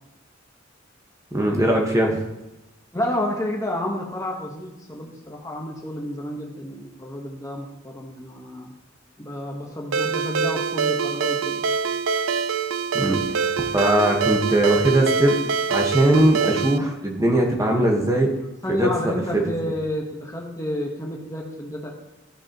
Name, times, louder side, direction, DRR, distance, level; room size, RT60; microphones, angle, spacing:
voice 1, 1.3-2.2 12.9-13.2 13.7-15.4 15.7-18.3 18.7-19.4, right 1 dB, 15° right, 1 dB, 1.2 m, -20 dB
voice 2, 2.9-8.7 9.2-11.6 18.6-21.9, left 1 dB, 15° left, 0 dB, 1.1 m, -30 dB
Ringtone, 9.9-16.8, right 6 dB, 80° right, 0.5 m, -24 dB
14.5 x 6.0 x 2.9 m, 0.98 s
head